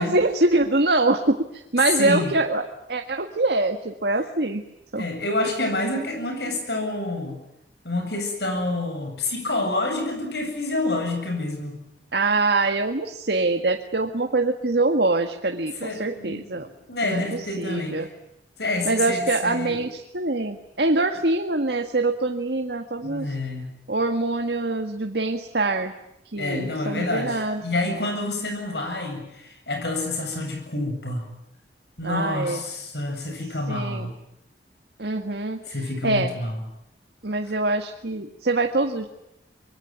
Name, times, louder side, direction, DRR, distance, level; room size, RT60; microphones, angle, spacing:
voice 1, 0.0-2.6 2.9-4.6 4.9-5.0 12.1-16.7 17.0-18.1 18.9-23.3 23.9-25.9 26.3-27.9 32.0-32.6 33.7-34.1 35.0-35.6 36.0-36.4 37.2-39.1, right 2 dB, 70° right, 5 dB, 1.8 m, -24 dB
voice 2, 1.8-2.4 5.0-7.4 7.8-11.8 15.8-18.1 18.6-19.8 23.0-23.7 26.4-31.3 32.0-34.1 35.7-36.6, left 2 dB, 75° left, 4 dB, 8.0 m, -28 dB
26.0 x 23.0 x 9.5 m, 0.85 s
head